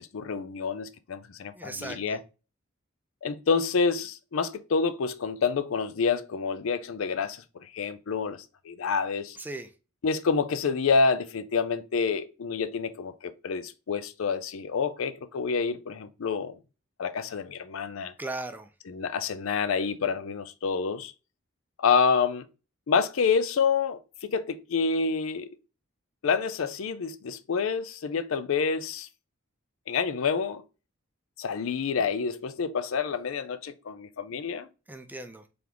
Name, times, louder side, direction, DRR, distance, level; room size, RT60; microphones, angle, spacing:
voice 1, 0.0-2.2 3.2-9.4 10.0-16.6 17.0-18.1 18.9-21.1 21.8-22.5 22.9-25.5 26.2-29.1 29.9-30.6 31.4-34.7, left 5 dB, 80° left, 0.5 m, -28 dB
voice 2, 1.6-2.2 9.4-9.7 18.2-18.7 34.9-35.4, right 2 dB, 10° right, 0.4 m, -37 dB
3.8 x 3.4 x 2.9 m
head